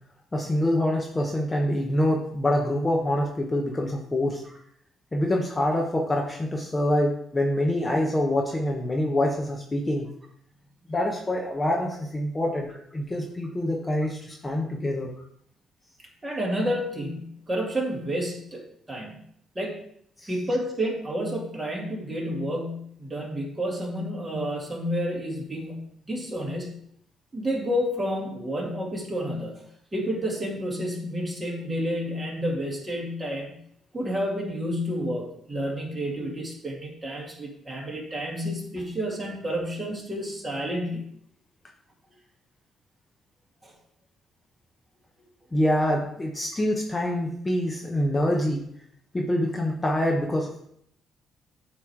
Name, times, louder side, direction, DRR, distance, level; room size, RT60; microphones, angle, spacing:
voice 1, 0.3-4.4 5.1-10.1 10.9-15.1 20.2-20.3 45.5-48.7 49.1-50.7, left 1 dB, 20° left, 1 dB, 0.8 m, -25 dB
voice 2, 16.2-18.6 18.9-19.1 19.6-19.8 20.3-25.8 26.1-26.8 27.3-29.6 29.9-33.6 33.9-41.0 43.6-43.7, equal, 20° right, -1 dB, 2.1 m, -30 dB
8.2 x 3.1 x 4.6 m, 0.69 s
cardioid pair, 90°, 0 cm